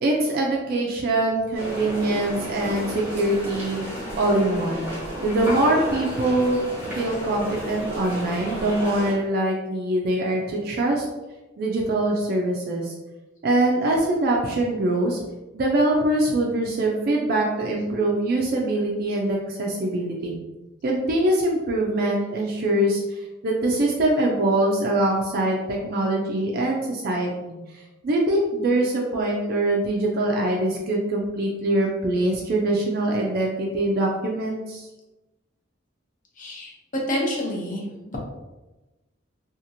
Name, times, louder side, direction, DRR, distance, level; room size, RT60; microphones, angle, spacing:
voice 1, 0.0-3.9 4.2-4.9 5.2-6.6 6.9-11.1 11.6-12.9 13.4-15.2 15.5-20.3 20.8-34.9, right 1 dB, 50° right, -1 dB, 0.4 m, -23 dB
sound 1, 1.5-9.1, equal, 10° right, 0.8 m, -32 dB
voice 2, 36.4-36.7 37.1-38.2, left 1 dB, 40° left, -1 dB, 0.6 m, -28 dB
2.8 x 2.4 x 2.6 m, 1.1 s
head